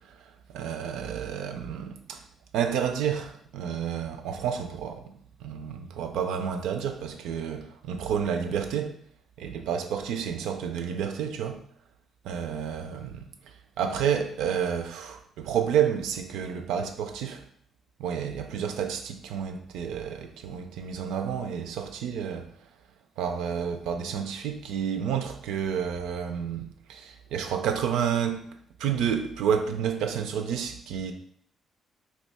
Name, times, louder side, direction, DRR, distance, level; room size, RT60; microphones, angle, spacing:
voice 1, 0.5-2.2 2.5-5.0 5.4-8.9 9.4-11.6 12.2-13.3 13.8-17.4 18.0-22.5 23.2-28.5 28.8-31.1, right 8 dB, 90° right, 0.3 m, -30 dB
2.8 x 2.3 x 4.1 m
cardioid pair, 90°, 0 cm